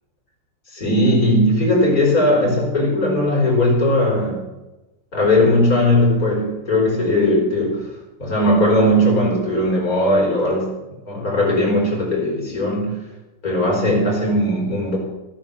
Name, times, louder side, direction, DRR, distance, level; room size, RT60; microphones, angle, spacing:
voice 1, 0.7-4.5 5.1-7.9 8.2-10.7 11.1-13.0 13.4-15.0, left 1 dB, 40° left, -2 dB, 5.2 m, -18 dB
15.5 x 8.7 x 7.4 m, 1.0 s
omnidirectional pair, 2.3 m